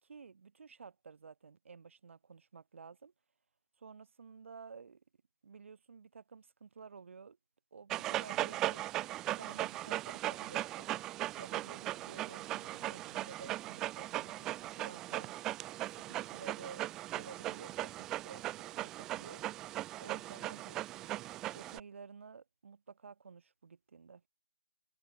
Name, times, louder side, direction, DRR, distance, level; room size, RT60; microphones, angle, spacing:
voice 1, 0.0-3.1 3.8-5.0 5.4-7.4 7.7-8.9 9.3-10.9 11.4-15.3 15.9-16.8 17.1-19.4 20.0-21.3 21.5-24.2, right 5 dB, 35° right, 3.5 m, -52 dB
Dog, 7.9-21.8, right 15 dB, 5° right, 0.6 m, -38 dB
figure-of-eight pair, 165°, 12 cm